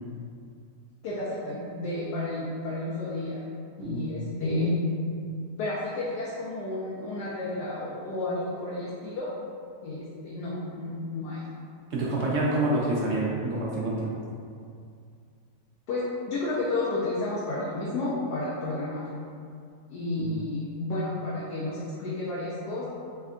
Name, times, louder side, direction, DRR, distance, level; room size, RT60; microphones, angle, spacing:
voice 1, 1.0-3.4 3.8-4.7 5.6-9.3 9.8-11.4 15.9-19.1 19.9-22.8, left 2 dB, 85° left, -8 dB, 1.2 m, -31 dB
voice 2, 3.8-4.2 11.9-14.2 20.2-20.3, right 2 dB, 70° right, -4 dB, 0.6 m, -27 dB
3.4 x 2.2 x 3.6 m, 2.3 s
omnidirectional pair, 1.7 m